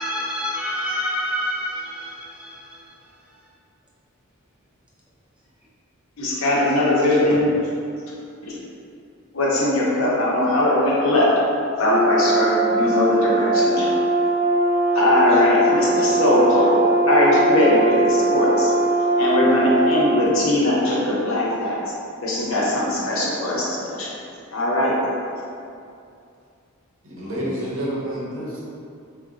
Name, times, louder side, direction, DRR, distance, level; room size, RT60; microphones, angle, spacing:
voice 1, 0.0-2.8, equal, 5° right, -6 dB, 0.4 m, -28 dB
voice 2, 6.2-7.5 8.4-8.5 9.3-11.3 11.8-13.9 14.9-16.8 17.1-18.7 19.2-21.8 22.2-24.1 24.5-25.0, left 1 dB, 75° left, -5 dB, 0.7 m, -20 dB
Brass instrument, 11.8-20.2, right 1 dB, 30° right, 0.8 m, -20 dB
voice 3, 27.1-28.6, equal, 65° right, -7 dB, 0.8 m, -28 dB
3.7 x 2.2 x 2.4 m, 2.5 s
head